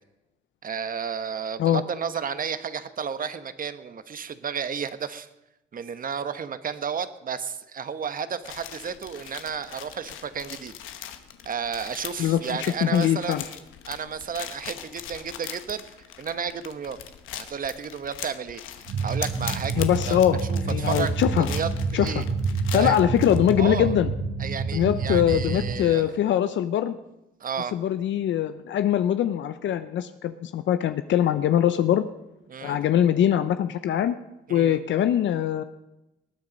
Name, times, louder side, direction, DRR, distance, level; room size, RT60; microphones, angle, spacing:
voice 1, 0.6-5.3 5.7-10.7 11.4-13.6 13.9-15.8 16.2-17.0 17.5-18.6 19.0-22.2 22.7-23.0 23.6-23.9 24.4-26.1 27.4-27.7 32.5-32.8 34.5-34.8, right 7 dB, 45° right, 12 dB, 1.1 m, -32 dB
sound 1, 8.5-23.5, left 10 dB, 90° left, 1.2 m, -41 dB
voice 2, 12.2-13.4 19.8-21.5 21.9-22.1 22.7-24.1 24.7-26.9 27.7-32.0 32.6-34.1 34.5-35.6, left 10 dB, 70° left, 11 dB, 0.6 m, -22 dB
sound 2, 18.9-25.8, right 4 dB, 75° right, 3.3 m, -28 dB
19.5 x 9.6 x 5.3 m, 0.94 s
cardioid pair, 90°, 20 cm